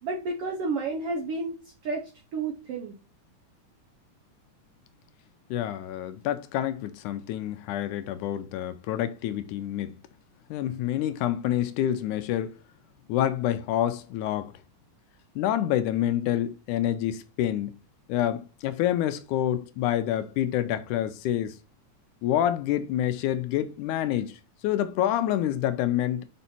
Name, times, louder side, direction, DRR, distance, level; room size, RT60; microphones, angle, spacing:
voice 1, 0.0-1.6 1.8-2.9, right 3 dB, 75° right, 1.3 m, -31 dB
voice 2, 5.5-9.9 10.5-12.5 13.1-14.5 15.4-17.7 18.1-21.6 22.2-24.4 24.6-26.2, left 11 dB, 80° left, 2.0 m, -27 dB
5.5 x 5.1 x 4.2 m
omnidirectional pair, 3.7 m